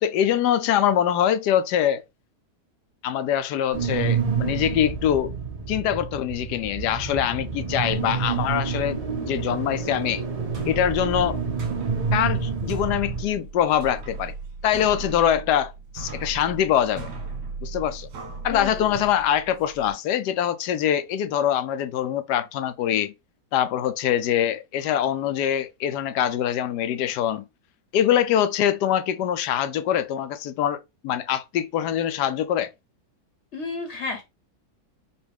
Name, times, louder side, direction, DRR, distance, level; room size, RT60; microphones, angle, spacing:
voice 1, 0.0-2.0 3.0-5.4 5.7-10.2 10.7-11.4 12.1-14.3 14.6-17.1 17.6-18.1 18.4-23.1 23.5-27.5 27.9-30.8 31.0-32.7, left 10 dB, 80° left, 1.2 m, -24 dB
sound 1, 3.7-13.2, right 5 dB, 30° right, 0.8 m, -28 dB
sound 2, 10.4-19.9, right 4 dB, 80° right, 1.9 m, -37 dB
voice 2, 18.5-19.0 33.5-34.2, left 4 dB, 50° left, 1.1 m, -32 dB
5.6 x 2.5 x 3.4 m
omnidirectional pair, 1.8 m